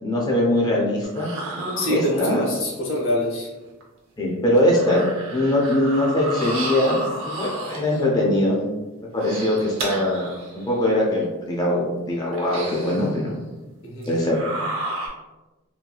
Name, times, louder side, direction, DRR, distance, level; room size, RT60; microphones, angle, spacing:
voice 1, 0.0-1.3 1.9-2.4 4.2-5.0 5.3-8.6 9.1-10.4 10.7-13.4 14.1-14.4, left 1 dB, 20° left, -3 dB, 0.6 m, -21 dB
sound 1, 1.0-2.5 3.8-3.9 4.5-8.1 9.0-10.7 11.2-11.3 12.3-13.2 14.0-15.1, right 2 dB, 65° right, 0.7 m, -32 dB
voice 2, 1.8-3.5 9.5-9.7 13.8-14.1, left 1 dB, 60° left, -2 dB, 0.8 m, -25 dB
3.0 x 2.7 x 2.3 m, 1.1 s
head